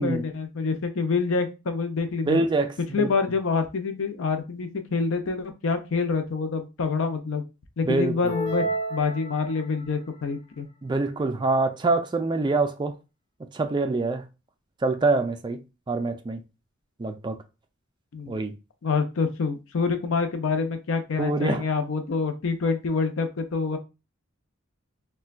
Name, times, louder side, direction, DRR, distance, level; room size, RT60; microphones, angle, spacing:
voice 1, 0.0-2.4 2.9-7.4 7.8-8.6 8.9-10.7 18.1-18.4 18.8-23.8, left 4 dB, 70° left, 0.6 m, -26 dB
voice 2, 2.3-3.1 7.8-8.1 10.8-13.0 13.5-14.2 14.8-16.4 17.0-17.4 18.3-18.5 21.2-21.7, right 3 dB, 20° right, 0.3 m, -25 dB
sound 1, 8.3-9.9, right 1 dB, 35° left, 0.8 m, -31 dB
4.2 x 2.2 x 2.3 m
head